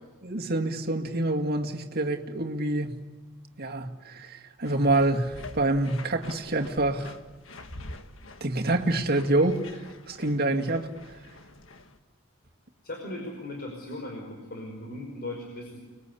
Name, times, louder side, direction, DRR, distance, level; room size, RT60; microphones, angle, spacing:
voice 1, 0.2-3.0 3.6-7.2 8.4-11.2, right 2 dB, 50° right, 2.1 m, -27 dB
sound 1, 4.6-12.0, left 2 dB, 65° left, 1.7 m, -46 dB
voice 2, 12.8-15.8, left 1 dB, 45° left, 5.2 m, -38 dB
30.0 x 21.5 x 8.5 m
head